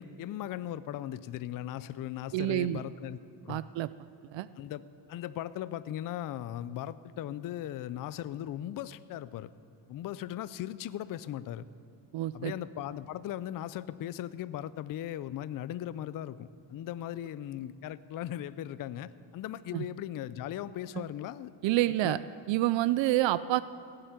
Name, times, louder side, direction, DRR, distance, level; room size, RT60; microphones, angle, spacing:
voice 1, 0.0-3.2 3.4-3.6 4.6-4.8 5.1-9.5 9.9-11.7 12.3-21.5 22.0-22.2, left 12 dB, 50° left, 16 dB, 0.4 m, -38 dB
voice 2, 2.3-2.8 3.5-3.9 4.3-4.5 12.1-12.5 19.7-19.8 20.9-21.0 21.6-22.2 22.5-23.6, right 15 dB, 75° right, 16 dB, 0.5 m, -28 dB
16.0 x 7.8 x 9.5 m, 2.5 s
cardioid pair, 155°, 45 cm